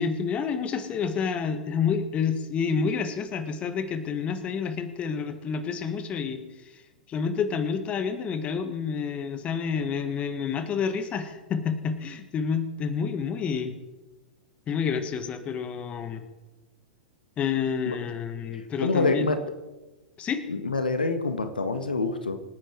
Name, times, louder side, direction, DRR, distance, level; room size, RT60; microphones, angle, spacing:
voice 1, 0.0-6.4 7.1-13.7 14.7-16.2 17.4-19.3 20.2-20.4, left 6 dB, 25° left, 9 dB, 1.7 m, -29 dB
voice 2, 18.5-19.4 20.5-22.4, left 3 dB, 80° left, 8 dB, 1.8 m, -26 dB
27.0 x 10.0 x 4.7 m, 1.1 s
figure-of-eight pair, 100°, 5 cm